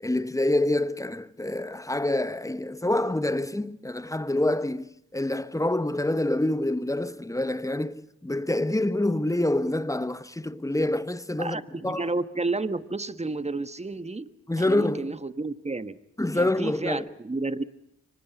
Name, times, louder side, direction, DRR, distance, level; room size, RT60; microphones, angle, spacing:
voice 1, 0.0-12.1 14.5-15.2 16.2-17.1, left 1 dB, 10° left, 1.1 m, -27 dB
voice 2, 11.4-14.3 14.6-16.0 16.3-17.6, right 3 dB, 20° right, 1.3 m, -31 dB
24.0 x 19.5 x 8.1 m
supercardioid pair, 50°, 35 cm